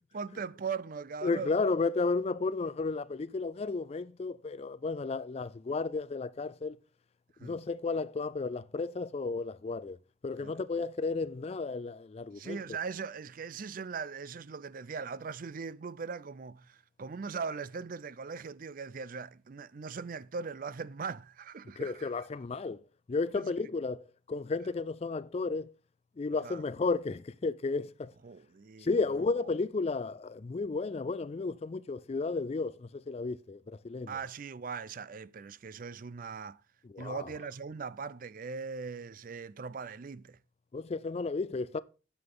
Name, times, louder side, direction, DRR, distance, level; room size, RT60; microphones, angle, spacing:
voice 1, 0.1-1.5 7.4-7.6 10.4-10.6 12.3-22.1 23.3-23.5 26.4-26.6 28.2-28.9 34.1-36.6 37.0-40.4, right 5 dB, 45° right, 0.4 m, -40 dB
voice 2, 1.2-6.8 7.4-10.0 10.2-12.8 21.8-22.8 23.1-25.7 26.2-28.1 28.8-34.2 36.9-37.3 40.7-41.8, left 3 dB, 35° left, 0.4 m, -33 dB
9.7 x 7.1 x 3.8 m
head